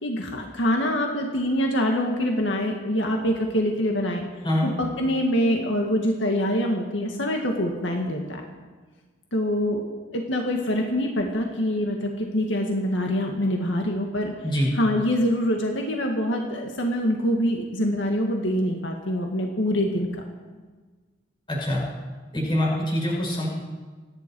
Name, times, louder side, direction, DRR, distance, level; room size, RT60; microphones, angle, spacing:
voice 1, 0.0-4.2 4.8-8.4 9.3-9.8 10.1-14.3 14.7-20.1, equal, 85° left, 1 dB, 1.9 m, -25 dB
voice 2, 21.5-21.8 22.3-23.5, left 1 dB, 25° left, -4 dB, 6.7 m, -24 dB
27.5 x 10.5 x 4.7 m, 1.4 s
head